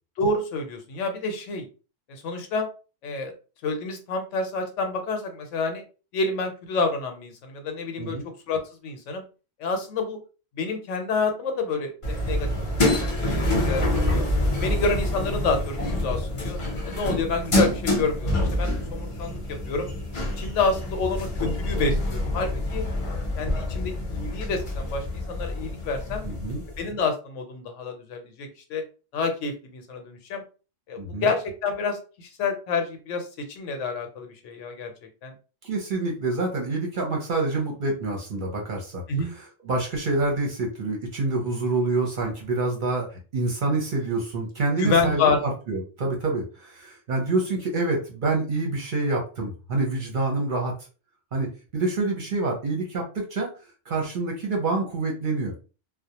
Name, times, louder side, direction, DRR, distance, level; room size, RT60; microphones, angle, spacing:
voice 1, 0.2-1.7 2.1-2.7 3.0-3.3 3.6-5.8 6.1-8.2 8.5-9.2 9.6-10.2 10.6-12.5 13.2-14.2 14.6-16.6 16.9-19.9 20.4-22.8 23.4-26.2 26.8-28.8 29.1-30.4 30.9-34.9 35.2-35.3 39.1-39.3 44.8-45.4, left 3 dB, 75° left, 5 dB, 0.9 m, -28 dB
sound 1, 12.0-26.8, left 1 dB, 40° left, 0.5 m, -27 dB
voice 2, 26.2-26.6 31.0-31.3 35.6-50.7 51.3-51.5 51.7-53.5 53.9-55.5, right 3 dB, 50° right, 0 dB, 0.7 m, -27 dB
2.3 x 2.0 x 2.8 m, 0.34 s
omnidirectional pair, 1.3 m